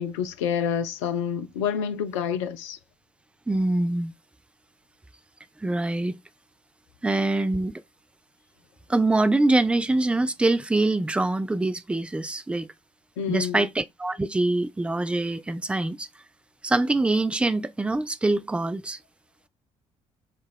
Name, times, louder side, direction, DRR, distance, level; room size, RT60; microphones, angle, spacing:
voice 1, 0.0-2.8 13.2-13.7, left 7 dB, 70° left, 0.4 m, -28 dB
voice 2, 3.5-4.1 5.6-6.2 7.0-7.8 8.9-12.7 13.3-16.1 16.6-19.0, right 2 dB, 5° right, 0.4 m, -24 dB
3.6 x 2.4 x 4.2 m
figure-of-eight pair, 45°, 16 cm